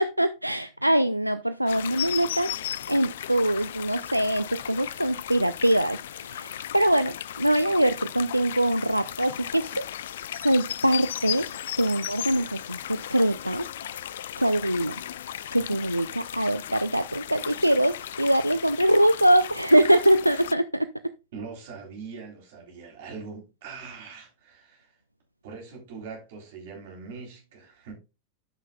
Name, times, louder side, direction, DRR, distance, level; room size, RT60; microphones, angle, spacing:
voice 1, 0.0-9.9 10.4-11.5 11.8-13.7 14.4-15.0 15.5-20.9, right 1 dB, 90° right, 0.3 m, -23 dB
sound 1, 1.7-20.5, left 11 dB, 60° left, 0.3 m, -36 dB
voice 2, 21.3-24.9 25.4-27.9, right 5 dB, 55° right, 3.4 m, -42 dB
12.5 x 5.6 x 2.3 m
figure-of-eight pair, 90°, 0 cm